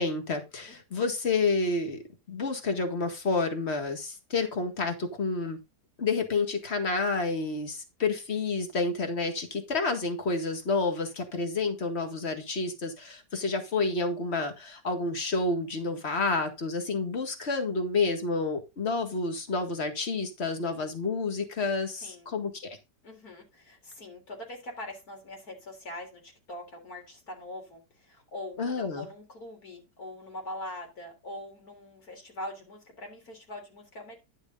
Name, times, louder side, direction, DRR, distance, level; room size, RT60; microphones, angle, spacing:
voice 1, 0.0-2.0 2.3-5.6 6.0-22.5 28.6-29.1, left 3 dB, 40° left, 6 dB, 2.0 m, -29 dB
voice 2, 22.0-22.3 23.0-34.2, left 1 dB, 55° left, 1 dB, 3.9 m, -42 dB
11.0 x 6.6 x 3.8 m, 0.25 s
omnidirectional pair, 1.9 m